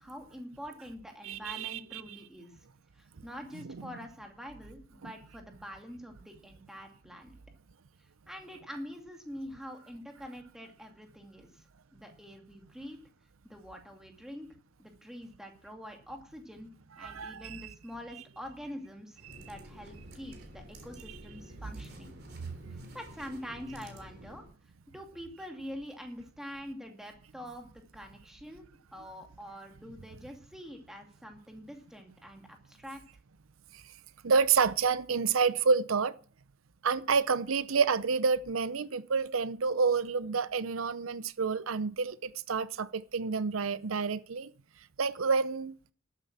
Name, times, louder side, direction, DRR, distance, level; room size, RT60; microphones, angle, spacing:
voice 1, 0.0-2.5 2.9-7.4 8.3-11.6 11.9-13.0 13.4-14.5 14.8-16.7 17.0-22.1 22.9-24.4 24.9-33.0, equal, ahead, 2.5 m, -45 dB
voice 2, 1.2-2.0 3.6-3.8 17.0-17.7 19.3-19.4 22.4-22.9 33.7-33.8 34.2-36.1 36.8-44.5 45.0-45.7, right 5 dB, 80° right, 0.7 m, -29 dB
sound 1, 19.1-24.5, equal, 50° right, 3.5 m, -50 dB
12.5 x 9.0 x 7.3 m
head